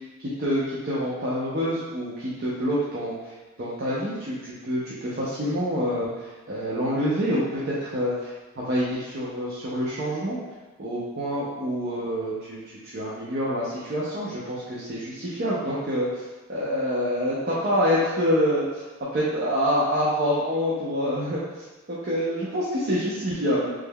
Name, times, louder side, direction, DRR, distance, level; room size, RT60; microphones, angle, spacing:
voice 1, 0.2-3.2 3.6-10.4 10.8-16.2 16.5-18.7 19.1-21.4 21.9-23.7, equal, 45° right, -7 dB, 0.5 m, -26 dB
3.6 x 3.1 x 2.2 m, 1.2 s
head